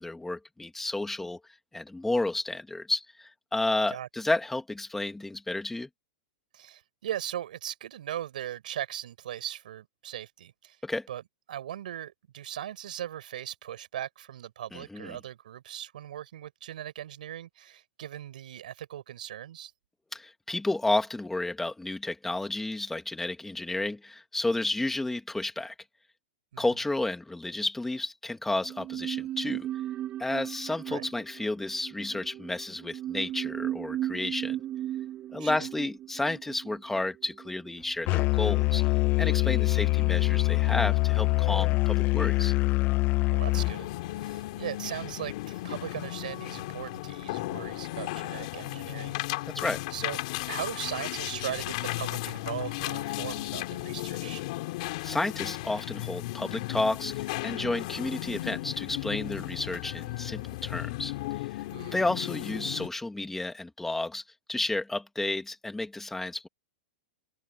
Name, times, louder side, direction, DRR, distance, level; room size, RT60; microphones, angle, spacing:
voice 1, 0.0-1.4 1.7-5.9 10.8-11.1 14.7-15.2 20.1-25.7 26.6-29.7 30.2-34.6 35.3-38.8 39.2-42.5 49.5-49.8 55.0-61.1 61.9-64.2 64.5-66.5, left 2 dB, 5° left, 2.2 m, -31 dB
voice 2, 6.5-10.8 11.1-19.7 26.5-26.8 30.9-31.0 35.4-35.7 43.3-43.9 44.2-49.2 49.4-49.5 49.9-50.2 50.5-54.4 61.7-62.0, right 11 dB, 75° right, 5.9 m, -39 dB
sound 1, 28.6-37.9 38.2-38.3, right 12 dB, 30° right, 7.3 m, -37 dB
Musical instrument, 38.1-43.7, left 22 dB, 40° left, 0.8 m, -24 dB
sound 2, 43.6-62.9, left 19 dB, 60° left, 3.4 m, -35 dB
open air
hypercardioid pair, 125°, 5 cm